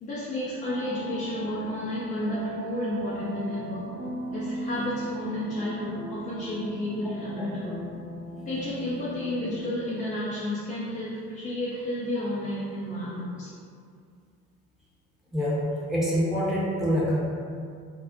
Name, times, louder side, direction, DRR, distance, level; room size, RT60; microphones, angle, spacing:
voice 1, 0.0-3.9 4.3-7.8 8.5-13.5, left 1 dB, 20° left, -8 dB, 0.3 m, -31 dB
sound 1, 0.6-9.7, equal, 90° left, 0.6 m, -38 dB
voice 2, 15.3-17.2, equal, ahead, -9 dB, 0.7 m, -25 dB
2.5 x 2.0 x 2.5 m, 2.3 s
figure-of-eight pair, 50°, 47 cm